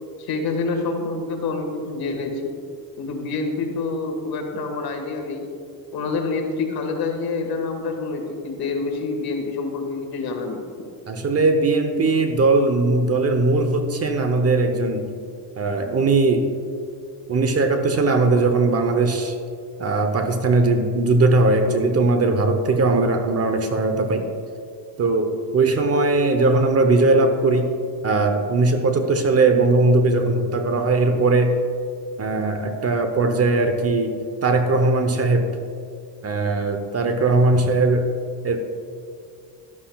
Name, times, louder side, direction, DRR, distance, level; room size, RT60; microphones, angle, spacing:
voice 1, 0.2-2.4 3.0-5.5 5.9-10.7, left 3 dB, 50° left, 3 dB, 1.8 m, -27 dB
voice 2, 11.1-15.1 15.6-16.5 17.3-19.4 19.8-24.3 25.0-27.8 28.0-31.6 32.2-34.1 34.4-35.6 36.2-38.1 38.4-38.6, right 3 dB, 35° right, 7 dB, 0.8 m, -19 dB
12.0 x 11.5 x 2.3 m, 2.3 s
cardioid pair, 110°, 45 cm